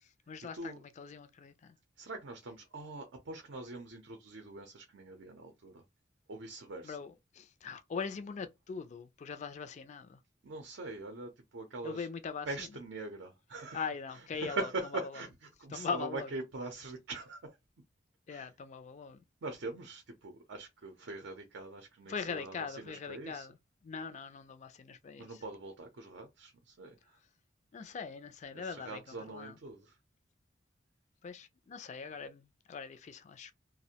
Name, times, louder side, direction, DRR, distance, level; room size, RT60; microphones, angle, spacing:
voice 1, 0.0-1.8 6.8-10.2 11.8-12.7 13.7-14.7 15.7-16.3 18.3-19.2 22.1-23.6 23.8-25.3 27.7-29.5 31.2-33.5, left 5 dB, 40° left, 0.3 m, -41 dB
voice 2, 2.0-5.8 6.3-7.0 10.4-12.1 12.5-13.8 14.1-17.6 18.3-18.5 19.4-23.5 25.2-27.2 28.5-30.0, right 3 dB, 70° right, 0.5 m, -43 dB
2.4 x 2.0 x 2.7 m
head